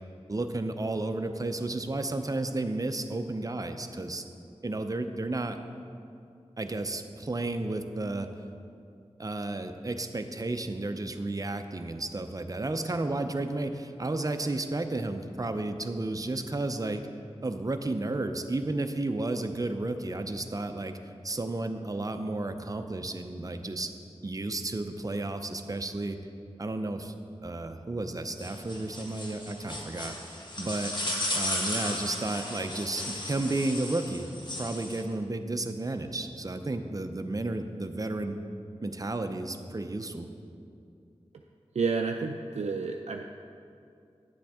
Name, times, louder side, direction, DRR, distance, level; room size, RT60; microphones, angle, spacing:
voice 1, 0.3-4.2 4.6-5.6 6.6-8.3 9.2-17.0 17.4-21.0 21.2-23.9 24.2-26.2 26.6-27.1 27.4-30.9 31.3-34.3 34.6-38.4 38.8-40.3, right 2 dB, 30° right, 7 dB, 0.6 m, -32 dB
sound 1, 28.4-35.0, left 1 dB, 40° left, 1.3 m, -35 dB
voice 2, 41.7-43.2, right 4 dB, 80° right, 3 dB, 0.4 m, -30 dB
9.6 x 7.6 x 3.5 m, 2.5 s
wide cardioid pair, 45°, 11 cm